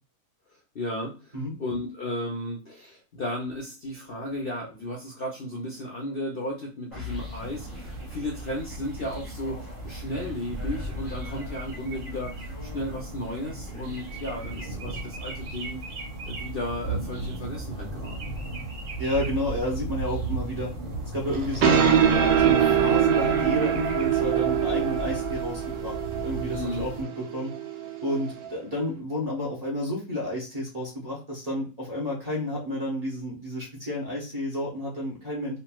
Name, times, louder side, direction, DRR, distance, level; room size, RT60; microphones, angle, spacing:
voice 1, 0.5-15.8 16.3-18.2 26.5-26.8, left 1 dB, 55° left, -2 dB, 0.7 m, -34 dB
sound 1, 6.9-15.2, left 2 dB, 10° left, 1.5 m, -45 dB
sound 2, 7.1-27.0, right 2 dB, 55° right, 1.3 m, -36 dB
voice 2, 19.0-20.7 21.1-22.0 22.4-27.5 28.0-35.6, left 1 dB, 30° right, -6 dB, 0.8 m, -31 dB
sound 3, 21.3-28.5, right 8 dB, 75° right, 0.5 m, -24 dB
3.2 x 2.5 x 2.3 m, 0.34 s
omnidirectional pair, 1.6 m